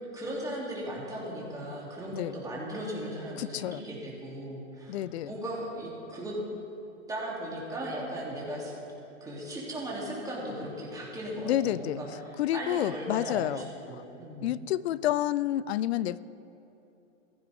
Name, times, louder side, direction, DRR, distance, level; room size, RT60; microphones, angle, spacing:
voice 1, 0.0-6.3 7.1-8.7 9.2-14.6, right 1 dB, 10° right, -5 dB, 2.9 m, -37 dB
voice 2, 3.4-3.8 4.9-5.3 11.4-12.0 12.4-13.7 13.9-14.0 14.4-16.2, left 13 dB, 55° left, 19 dB, 0.5 m, -29 dB
16.5 x 15.0 x 3.6 m, 2.9 s
hypercardioid pair, 135°, 38 cm